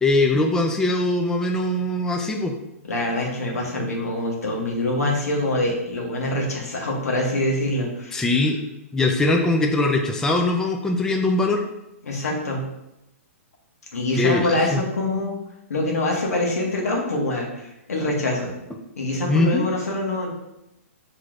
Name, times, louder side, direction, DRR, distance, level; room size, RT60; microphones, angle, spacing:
voice 1, 0.0-2.5 8.1-8.6 8.9-11.6 14.1-14.8 19.3-19.7, left 2 dB, 5° left, 2 dB, 0.4 m, -21 dB
voice 2, 2.8-8.2 12.0-12.6 13.9-15.4 15.7-18.5 19.0-20.3, left 1 dB, 90° left, -1 dB, 1.3 m, -25 dB
6.0 x 3.2 x 2.5 m, 0.89 s
hypercardioid pair, 135°, 8 cm